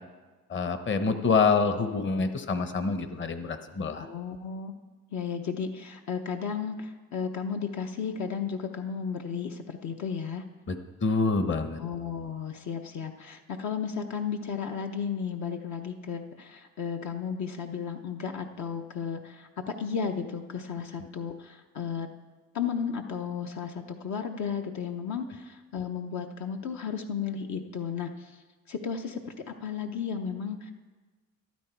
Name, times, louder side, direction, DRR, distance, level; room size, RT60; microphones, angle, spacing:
voice 1, 0.5-4.1 10.7-10.8 11.0-11.8, left 4 dB, 40° left, 9 dB, 1.0 m, -26 dB
voice 2, 4.0-4.7 5.1-10.4 11.8-22.1 22.5-30.7, left 6 dB, 65° left, 4 dB, 0.9 m, -34 dB
13.5 x 11.5 x 4.6 m, 1.3 s
cardioid pair, 90°, 30 cm